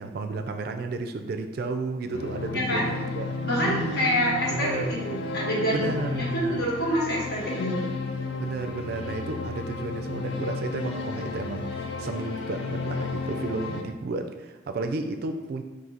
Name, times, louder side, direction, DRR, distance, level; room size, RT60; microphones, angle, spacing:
voice 1, 0.0-3.3 3.6-4.1 4.5-4.9 5.7-6.7 8.4-15.6, right 3 dB, 55° right, 6 dB, 0.3 m, -32 dB
sound 1, 2.1-13.8, left 3 dB, 85° left, 0.4 m, -33 dB
voice 2, 2.5-2.8 3.4-7.8, equal, 60° left, -4 dB, 1.2 m, -27 dB
3.9 x 2.6 x 4.2 m, 1.3 s
head